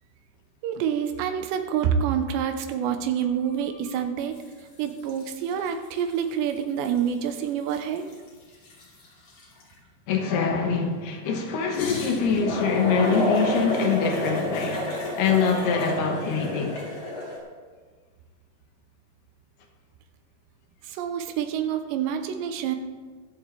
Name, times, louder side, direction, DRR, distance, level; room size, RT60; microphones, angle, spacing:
voice 1, 0.6-4.4 4.8-8.0 20.8-22.8, right 8 dB, 90° right, 3.0 m, -27 dB
sound 1, 4.4-4.6 4.9-6.1 6.5-6.6 6.8-9.7 11.7-17.4, left 2 dB, 50° left, 3.0 m, -29 dB
voice 2, 10.1-14.9 15.2-16.8, left 5 dB, 70° left, 2.9 m, -24 dB
22.0 x 7.5 x 3.3 m
omnidirectional pair, 5.0 m